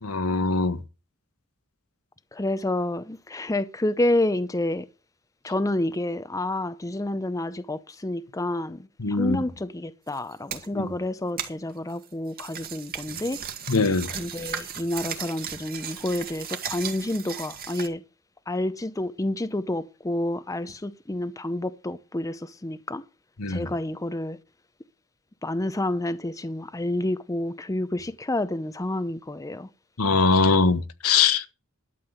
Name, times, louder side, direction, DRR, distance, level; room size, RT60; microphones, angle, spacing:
voice 1, 0.0-0.8 9.0-9.4 10.7-10.9 13.7-14.1 23.4-23.7 30.0-31.5, left 4 dB, 75° left, 1.4 m, -22 dB
voice 2, 2.3-4.9 5.4-18.0 18.5-23.0 23.5-24.4 25.4-29.7, left 1 dB, 15° left, 0.6 m, -29 dB
sound 1, 10.1-10.7 11.4-17.9, right 8 dB, 45° right, 1.9 m, -36 dB
12.5 x 7.6 x 6.7 m
head